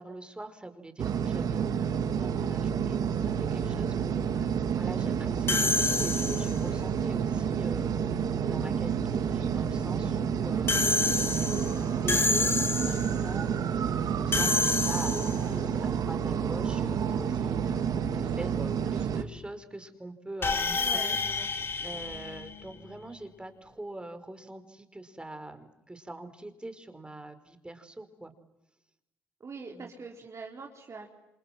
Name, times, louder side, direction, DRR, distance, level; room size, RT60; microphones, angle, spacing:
voice 1, 0.0-7.9 8.4-17.8 18.1-21.2 21.8-28.3 29.7-29.9, right 2 dB, 15° right, 9 dB, 5.0 m, -43 dB
sound 1, 1.0-19.2, right 7 dB, 60° right, 1.9 m, -29 dB
sound 2, 5.5-6.7 10.7-13.2 14.3-15.6 20.4-23.0, left 3 dB, 35° left, 3.0 m, -29 dB
voice 2, 20.8-22.0 29.4-31.1, right 4 dB, 40° right, 1 dB, 4.2 m, -44 dB
28.5 x 27.5 x 7.7 m, 0.87 s
supercardioid pair, 60°, 7 cm